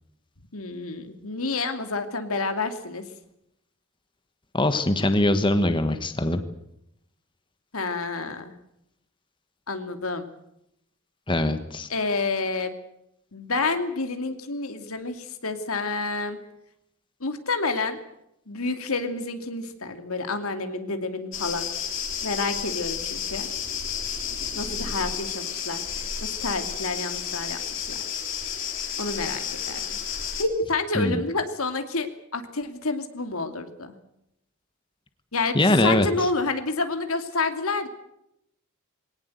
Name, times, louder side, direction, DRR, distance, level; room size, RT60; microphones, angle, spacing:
voice 1, 0.5-3.0 7.7-8.5 9.7-10.3 11.9-12.7 13.3-16.4 17.2-18.0 18.5-21.7 22.2-23.5 24.5-28.0 29.0-30.0 30.4-33.9 35.3-37.9, left 3 dB, 80° left, 7 dB, 2.6 m, -29 dB
voice 2, 4.5-6.4 11.3-11.9 31.0-31.2 35.5-36.1, left 1 dB, 20° left, 9 dB, 1.4 m, -22 dB
sound 1, 21.3-30.4, left 8 dB, 60° left, 3.7 m, -31 dB
22.5 x 18.0 x 8.0 m, 0.80 s
head